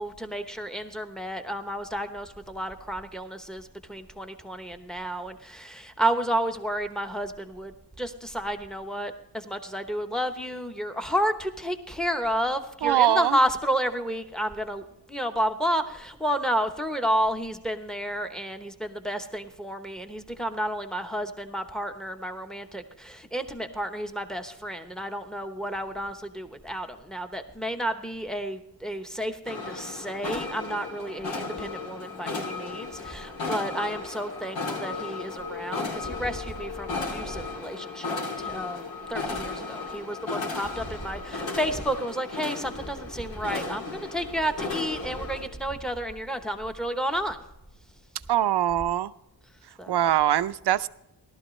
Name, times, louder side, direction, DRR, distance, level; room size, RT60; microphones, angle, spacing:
voice 1, 0.0-14.8 15.1-47.4 49.8-50.0, equal, ahead, 7 dB, 0.9 m, -31 dB
voice 2, 12.8-13.4 48.3-49.1 49.9-50.9, right 12 dB, 65° right, 14 dB, 0.6 m, -22 dB
sound 1, 29.5-45.5, left 3 dB, 85° left, 2.7 m, -35 dB
17.0 x 12.5 x 3.2 m, 0.84 s
wide cardioid pair, 160°, 44 cm